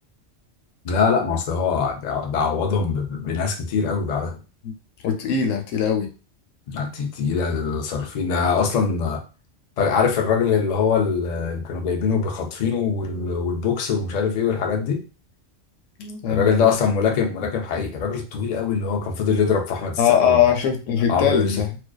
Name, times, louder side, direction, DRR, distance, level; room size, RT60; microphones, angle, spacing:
voice 1, 0.8-4.4 6.7-9.2 9.8-15.0 16.3-20.4 21.1-21.6, left 5 dB, 65° left, 3 dB, 0.4 m, -23 dB
voice 2, 5.0-6.1 16.0-16.7 20.0-21.8, left 8 dB, 90° left, 4 dB, 0.9 m, -21 dB
2.5 x 2.2 x 2.2 m, 0.33 s
omnidirectional pair, 1.3 m